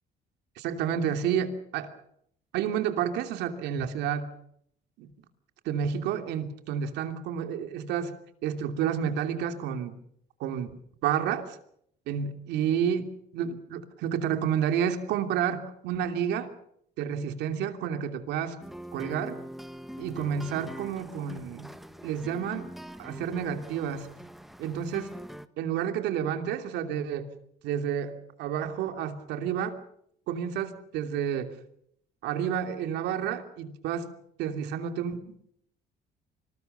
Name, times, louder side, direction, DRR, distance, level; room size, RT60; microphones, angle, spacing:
voice 1, 0.6-1.9 2.5-4.3 5.0-5.1 5.6-8.1 8.4-10.0 10.4-10.7 11.0-11.6 12.1-13.0 13.3-16.5 17.0-18.6 18.9-19.4 20.0-21.7 22.0-22.7 23.0-24.1 24.6-25.1 25.6-27.3 27.6-28.1 28.4-29.8 30.3-31.5 32.2-34.1 34.4-35.2, right 8 dB, 85° right, 7 dB, 2.9 m, -30 dB
sound 1, 18.6-25.5, equal, ahead, 1.3 m, -43 dB
26.0 x 20.0 x 6.9 m, 0.70 s
cardioid pair, 110°, 17 cm